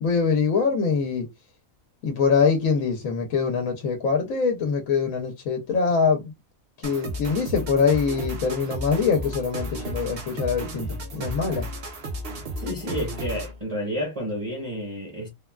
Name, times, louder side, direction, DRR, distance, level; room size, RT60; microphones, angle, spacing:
voice 1, 0.0-1.3 2.0-6.3 6.8-11.7, left 5 dB, 80° left, 1.1 m, -23 dB
sound 1, 6.8-13.6, right 1 dB, 55° right, 0.9 m, -34 dB
voice 2, 12.6-15.3, equal, 30° right, 0.8 m, -30 dB
3.5 x 2.2 x 2.2 m
omnidirectional pair, 1.4 m